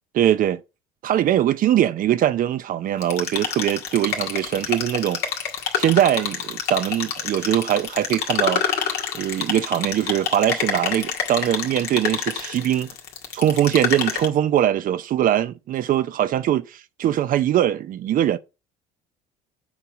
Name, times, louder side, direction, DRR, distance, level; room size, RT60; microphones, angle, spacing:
voice 1, 0.1-0.6 1.0-5.2 5.8-8.6 9.1-12.9 13.3-18.4, right 11 dB, 50° right, 0.6 m, -21 dB
sound 1, 3.0-14.3, left 7 dB, 65° left, 1.8 m, -27 dB
7.2 x 4.6 x 5.1 m
hypercardioid pair, 70°, 18 cm